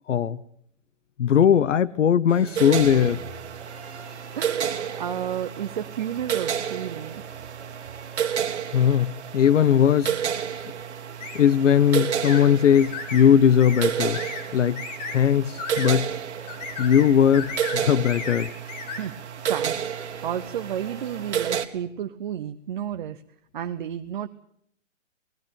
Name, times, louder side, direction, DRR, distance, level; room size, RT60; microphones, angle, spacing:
voice 1, 0.1-0.4 1.2-3.2 8.7-10.2 11.3-14.2 14.5-14.8 15.1-16.1 16.8-18.5, left 8 dB, 75° left, 1.0 m, -19 dB
sound 1, 2.3-21.6, right 2 dB, 5° right, 4.5 m, -48 dB
sound 2, 2.6-21.7, right 8 dB, 65° right, 2.1 m, -31 dB
voice 2, 4.4-7.2 10.1-10.2 18.9-23.2 23.5-24.3, right 10 dB, 40° right, 0.9 m, -32 dB
sound 3, 11.2-11.4 12.2-12.4 12.7-13.3 13.6-13.9 14.1-14.4 14.8-15.2 15.6-15.9 16.5-17.1 17.3-17.8 18.0-19.0, left 4 dB, 35° left, 3.5 m, -34 dB
19.5 x 16.5 x 8.8 m
hypercardioid pair, 160°, 37 cm